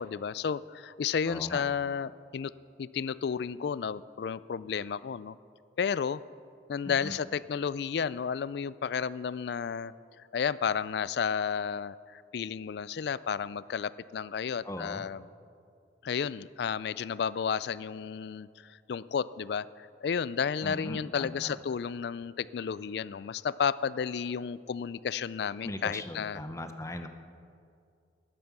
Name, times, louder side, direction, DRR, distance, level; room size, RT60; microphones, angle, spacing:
voice 1, 0.0-2.5 2.8-5.4 5.8-6.2 6.7-9.9 10.3-15.2 16.0-19.7 20.0-26.4, left 6 dB, 60° left, 18 dB, 0.3 m, -32 dB
voice 2, 1.3-1.6 6.9-7.2 14.6-15.0 20.6-21.5 25.6-27.1, left 1 dB, 15° left, 7 dB, 0.7 m, -39 dB
14.0 x 11.0 x 6.0 m, 2.3 s
head